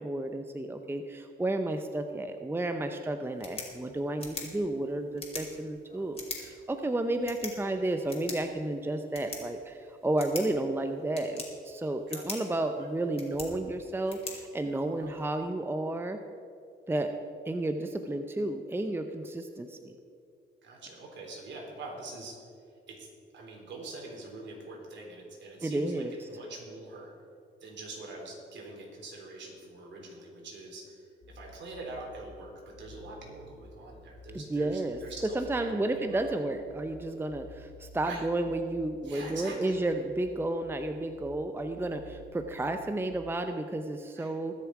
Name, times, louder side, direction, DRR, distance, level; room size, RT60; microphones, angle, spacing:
voice 1, 0.0-16.2 16.9-17.1 17.5-19.9 25.6-26.1 34.3-35.0 35.3-44.5, right 2 dB, 10° right, 7 dB, 0.7 m, -32 dB
sound 1, 3.2-15.2, left 3 dB, 30° left, 3.0 m, -45 dB
voice 2, 12.1-12.4 12.8-12.9 15.0-15.2 20.6-22.4 22.9-23.1 23.3-27.1 27.6-36.5 38.0-38.3 39.0-39.8 44.1-44.4, right 2 dB, 65° right, -1 dB, 3.8 m, -44 dB
sound 2, 31.2-43.1, equal, 60° left, 1.9 m, -53 dB
21.0 x 7.0 x 4.9 m, 2.4 s
cardioid pair, 90°, 20 cm